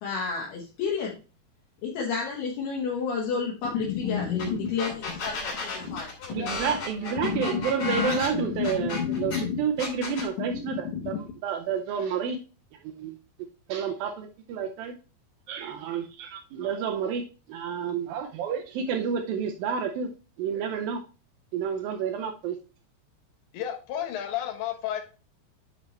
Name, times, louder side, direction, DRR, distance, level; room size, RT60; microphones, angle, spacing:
voice 1, 0.0-1.1 1.8-6.1, left 5 dB, 70° left, -3 dB, 3.2 m, -31 dB
voice 2, 3.9-4.6 5.5-5.6 6.2-6.6 7.0-9.5 10.4-10.5 23.5-25.0, left 9 dB, 85° left, 4 dB, 3.5 m, -31 dB
sound 1, 4.4-4.5 4.8-9.4 9.8-10.3, left 3 dB, 45° left, 3.5 m, -33 dB
voice 3, 6.3-12.4 12.8-13.2 13.7-14.9 15.5-17.2 17.5-20.1 20.4-21.0 21.5-22.6, right 7 dB, 85° right, 4 dB, 2.0 m, -30 dB
8.5 x 5.3 x 3.2 m, 0.33 s
omnidirectional pair, 5.0 m